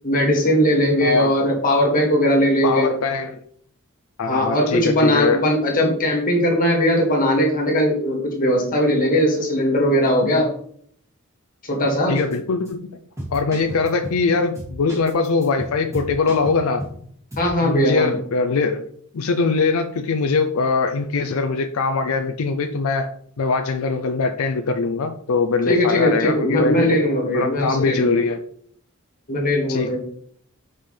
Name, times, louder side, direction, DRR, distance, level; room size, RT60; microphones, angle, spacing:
voice 1, 0.0-2.9 4.2-10.5 11.6-12.2 17.4-18.2 25.7-28.2 29.3-30.0, equal, 40° left, -2 dB, 1.9 m, -19 dB
voice 2, 1.0-1.3 2.6-3.4 4.2-5.4 12.1-13.0 13.3-16.8 17.6-18.8 19.1-26.9 27.3-28.4 29.7-30.0, left 4 dB, 80° left, 6 dB, 0.5 m, -22 dB
sound 1, 12.1-12.4 12.6-12.7 13.2-14.2 14.5-17.0 17.3-17.5, equal, 15° right, 2.4 m, -34 dB
5.7 x 5.4 x 3.3 m, 0.63 s
head